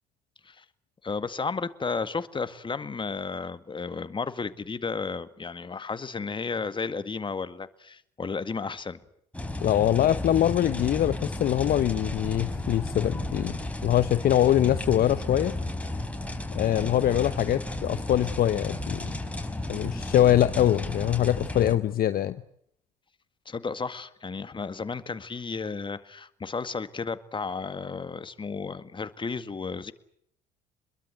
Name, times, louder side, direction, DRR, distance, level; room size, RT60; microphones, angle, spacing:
voice 1, 1.0-9.0 16.7-16.9 23.5-29.9, left 4 dB, 25° left, 1.9 m, -33 dB
sound 1, 9.3-21.8, left 2 dB, 5° left, 4.9 m, -33 dB
voice 2, 9.6-15.5 16.5-19.1 19.7-22.4, left 12 dB, 45° left, 1.0 m, -23 dB
26.5 x 22.0 x 7.9 m
hypercardioid pair, 60°, 20 cm